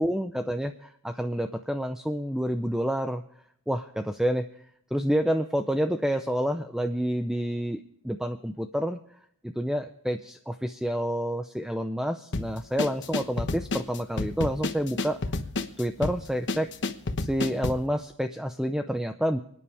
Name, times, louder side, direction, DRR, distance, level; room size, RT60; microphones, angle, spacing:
voice 1, 0.0-3.2 3.7-4.5 4.9-9.0 9.4-15.2 15.8-16.7 17.2-19.4, equal, ahead, 7 dB, 0.5 m, -28 dB
sound 1, 12.3-17.9, left 2 dB, 55° left, 1.2 m, -30 dB
28.5 x 9.8 x 3.5 m, 0.70 s
head